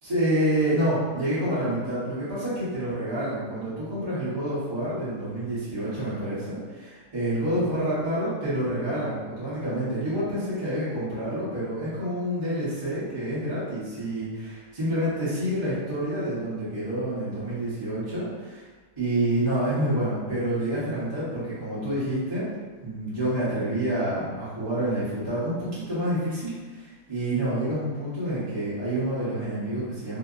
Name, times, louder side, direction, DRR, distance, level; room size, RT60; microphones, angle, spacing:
voice 1, 0.0-18.6 19.0-22.5 22.8-30.2, right 1 dB, 25° right, -12 dB, 0.7 m, -28 dB
2.7 x 2.1 x 2.4 m, 1.3 s
omnidirectional pair, 1.7 m